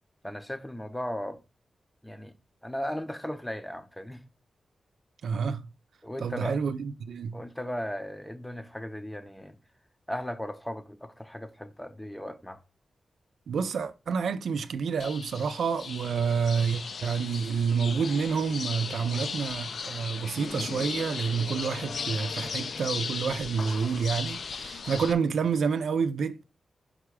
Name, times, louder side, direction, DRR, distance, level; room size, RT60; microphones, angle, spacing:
voice 1, 0.2-1.4 2.0-2.3 2.6-4.2 6.0-6.6 7.3-9.6 10.1-12.6, equal, 5° left, 0.6 m, -36 dB
voice 2, 5.2-5.6 6.2-7.4 13.5-26.4, right 6 dB, 85° right, 0.5 m, -28 dB
sound 1, 15.0-25.1, left 5 dB, 60° left, 0.5 m, -36 dB
5.7 x 3.4 x 4.8 m
wide cardioid pair, 145°, 0 cm